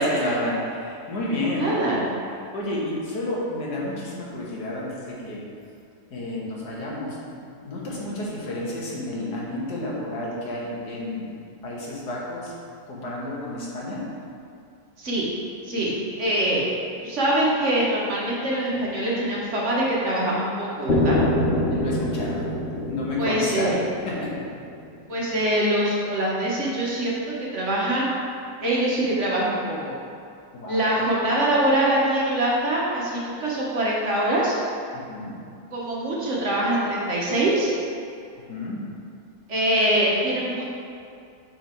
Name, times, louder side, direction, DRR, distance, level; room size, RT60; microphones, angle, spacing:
voice 1, 0.0-1.9 2.5-5.4 6.1-7.2 7.6-11.3 11.6-12.5 12.9-14.0 21.7-22.5 22.9-23.8 24.1-24.4 30.5-31.0 34.9-35.3 38.5-38.8, left 1 dB, 75° left, -5 dB, 1.9 m, -30 dB
voice 2, 1.5-2.0 7.9-8.0 15.0-15.2 15.6-15.9 16.2-16.6 17.0-21.2 23.2-23.7 25.1-28.1 28.6-29.9 30.7-34.5 35.7-37.7 39.5-40.7, right 1 dB, 50° right, -5 dB, 1.3 m, -24 dB
sound 1, 20.9-24.8, left 1 dB, 45° left, 0.9 m, -25 dB
5.9 x 5.3 x 4.4 m, 2.4 s
omnidirectional pair, 1.8 m